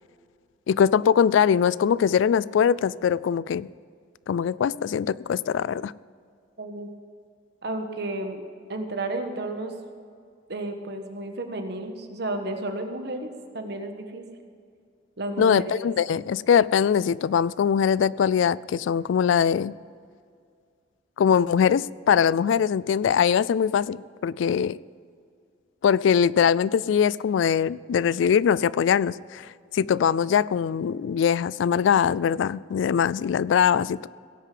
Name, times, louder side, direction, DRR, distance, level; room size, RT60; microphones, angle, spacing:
voice 1, 0.7-3.7 4.3-5.9 15.4-19.7 21.2-24.8 25.8-29.4 29.7-34.1, left 7 dB, 75° left, 21 dB, 0.3 m, -22 dB
voice 2, 6.6-6.9 7.6-8.4 8.7-9.7 10.5-14.2 15.2-15.9, right 2 dB, 60° right, 6 dB, 1.3 m, -32 dB
17.5 x 6.7 x 7.7 m, 2.2 s
head